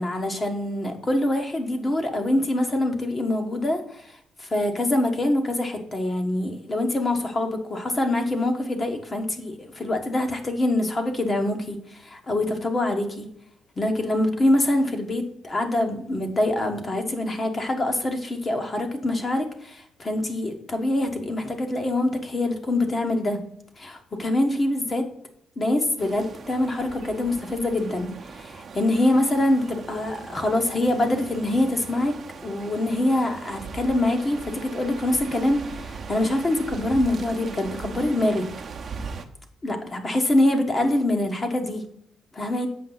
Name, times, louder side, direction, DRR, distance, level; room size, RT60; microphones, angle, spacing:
voice 1, 0.0-4.1 4.4-13.3 13.8-23.4 23.8-25.1 25.6-32.1 32.4-38.4 39.6-41.8 42.3-42.7, left 1 dB, 30° left, 4 dB, 1.3 m, -24 dB
sound 1, 26.0-39.3, right 5 dB, 50° right, 0.9 m, -39 dB
7.5 x 5.4 x 4.0 m, 0.69 s
cardioid pair, 90°, 0 cm